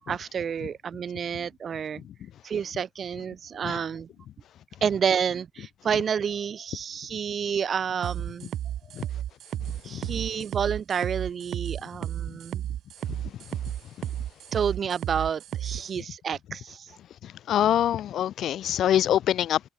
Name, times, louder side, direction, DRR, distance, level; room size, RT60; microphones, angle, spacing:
voice 1, 0.1-2.0 2.4-4.1 4.8-8.6 9.0-9.1 9.8-12.6 14.5-16.9, right 7 dB, 50° right, 1.3 m, -29 dB
sound 1, 8.0-15.8, right 11 dB, 75° right, 1.0 m, -33 dB
voice 2, 17.5-19.6, left 11 dB, 70° left, 0.5 m, -24 dB
cardioid pair, 90°, 0 cm